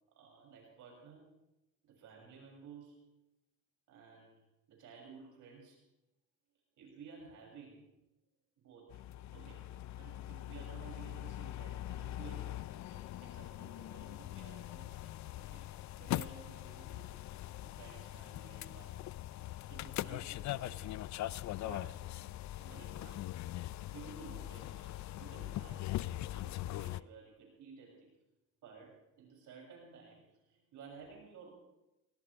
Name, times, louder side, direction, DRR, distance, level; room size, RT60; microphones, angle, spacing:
voice 1, 0.2-1.3 1.8-3.1 3.9-4.4 4.7-5.8 6.8-7.9 8.6-9.0 9.3-17.1 17.6-19.1 19.6-21.1 21.6-23.3 23.8-28.1 28.6-31.6, right 5 dB, 80° right, -1 dB, 7.1 m, -55 dB
sound 1, 8.9-27.0, left 15 dB, 65° left, 0.5 m, -42 dB
20.0 x 19.0 x 3.5 m, 0.93 s
cardioid pair, 90°, 30 cm